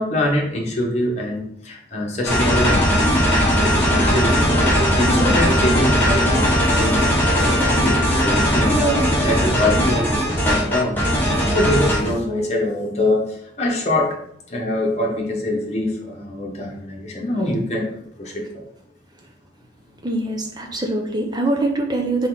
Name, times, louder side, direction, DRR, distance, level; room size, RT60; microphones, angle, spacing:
voice 1, 0.0-14.2 14.5-18.6, left 1 dB, 35° left, -1 dB, 1.3 m, -24 dB
sound 1, 2.2-12.1, equal, 10° left, 1.7 m, -18 dB
voice 2, 20.0-22.3, right 2 dB, 20° right, 1 dB, 0.9 m, -23 dB
5.6 x 4.3 x 4.1 m, 0.73 s
head